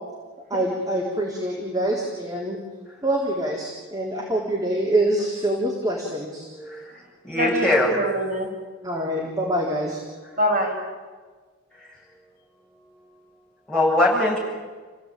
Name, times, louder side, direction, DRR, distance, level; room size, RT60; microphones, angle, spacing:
voice 1, 0.5-2.6 3.0-6.5 8.8-10.0, right 1 dB, 20° right, -3 dB, 3.7 m, -25 dB
voice 2, 6.5-6.9 7.2-7.9 13.7-14.4, left 1 dB, 5° left, -6 dB, 7.5 m, -21 dB
voice 3, 7.3-8.5 10.4-10.8, equal, 45° right, -1 dB, 6.3 m, -25 dB
29.0 x 17.0 x 9.1 m, 1.4 s
head